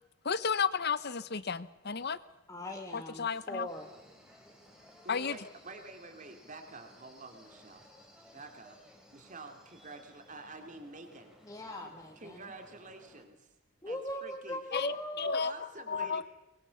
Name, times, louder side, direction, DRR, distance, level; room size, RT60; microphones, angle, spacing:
voice 1, 0.2-2.2 2.9-3.7 5.1-5.4 14.7-15.5 15.9-16.2, left 6 dB, 50° left, 16 dB, 0.9 m, -32 dB
voice 2, 2.5-3.9 11.4-12.5 13.8-15.4, left 1 dB, 15° left, 2 dB, 1.6 m, -40 dB
sound 1, 3.7-13.2, equal, 5° right, 3.6 m, -59 dB
voice 3, 5.0-7.8 8.3-8.8 9.1-11.4 11.8-11.9 12.2-13.5 13.9-14.6 15.4-16.2, right 3 dB, 35° right, 6 dB, 2.6 m, -48 dB
23.5 x 22.0 x 7.1 m, 0.98 s
head